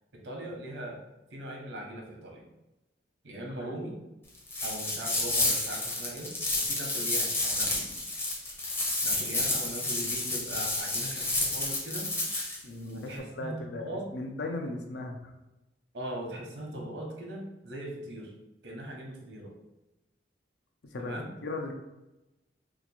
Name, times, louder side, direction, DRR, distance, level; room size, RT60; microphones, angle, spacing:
voice 1, 0.2-1.0 1.3-2.4 3.2-4.0 4.6-6.3 6.5-7.9 9.0-12.1 12.9-14.0 15.9-18.3 18.6-19.5 21.0-21.3, right 1 dB, 80° right, -1 dB, 0.9 m, -40 dB
sound 1, 4.5-12.6, left 2 dB, 10° left, 0.5 m, -30 dB
voice 2, 12.6-15.3 20.8-21.7, left 2 dB, 75° left, 3 dB, 0.5 m, -37 dB
2.9 x 2.4 x 4.2 m, 0.99 s
head